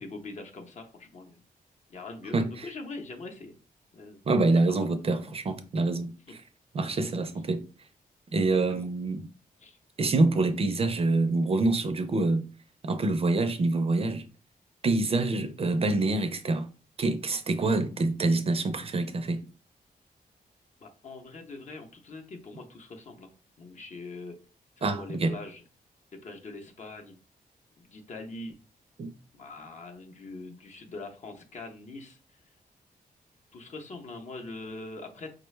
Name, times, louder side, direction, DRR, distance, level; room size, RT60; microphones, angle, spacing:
voice 1, 0.0-1.4 1.9-3.6 3.9-4.2 4.7-4.9 6.3-6.4 8.5-8.9 9.6-9.8 15.0-15.2 20.8-23.3 23.6-24.4 24.8-25.6 26.1-27.2 27.8-28.6 29.3-32.2 33.5-35.3, left 3 dB, 50° left, 0.7 m, -43 dB
voice 2, 2.3-2.7 4.3-6.1 6.7-7.6 8.3-9.3 10.0-12.5 12.8-14.3 14.8-16.7 17.0-19.4 24.8-25.4 29.0-29.1, right 2 dB, 40° right, 0.4 m, -26 dB
4.7 x 2.2 x 3.1 m
wide cardioid pair, 165°, 16 cm